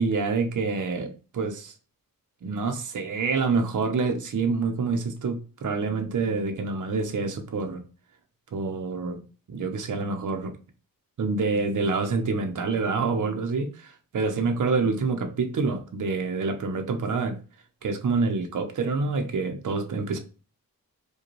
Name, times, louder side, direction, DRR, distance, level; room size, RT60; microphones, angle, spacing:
voice 1, 0.0-1.7 2.4-7.8 8.5-9.2 9.5-10.6 11.2-17.4 17.8-20.2, right 4 dB, 60° right, 0.6 m, -27 dB
4.9 x 2.3 x 3.0 m
wide cardioid pair, 120°, 35 cm